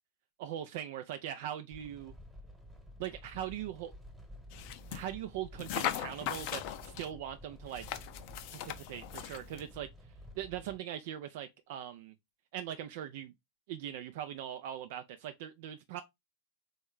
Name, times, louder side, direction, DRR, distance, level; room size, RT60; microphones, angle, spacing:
voice 1, 0.4-2.1 3.0-3.9 4.9-7.9 8.5-9.9 10.4-12.1 12.5-13.3 13.7-16.0, right 10 dB, 50° right, 0.3 m, -41 dB
sound 1, 1.7-10.8, equal, 5° right, 1.1 m, -52 dB
sound 2, 4.5-5.1 5.6-7.1 7.7-9.7, left 12 dB, 45° left, 0.4 m, -39 dB
3.5 x 3.0 x 3.5 m
figure-of-eight pair, 90°, 0 cm